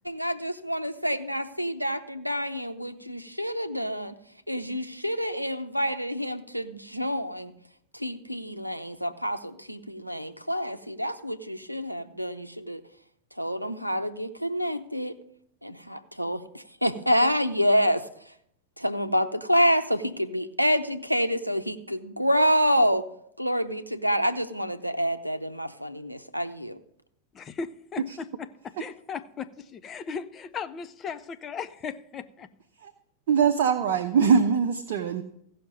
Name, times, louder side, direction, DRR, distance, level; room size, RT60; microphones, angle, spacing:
voice 1, 0.0-4.1 4.5-7.5 7.9-12.8 13.4-15.1 15.6-18.1 18.8-23.1 23.4-26.8, equal, 90° right, 11 dB, 0.6 m, -27 dB
voice 2, 27.3-32.5, left 6 dB, 25° left, 11 dB, 0.7 m, -37 dB
voice 3, 33.3-35.2, right 6 dB, 55° right, 7 dB, 0.7 m, -22 dB
15.5 x 5.8 x 5.2 m, 0.71 s
figure-of-eight pair, 90°, 0 cm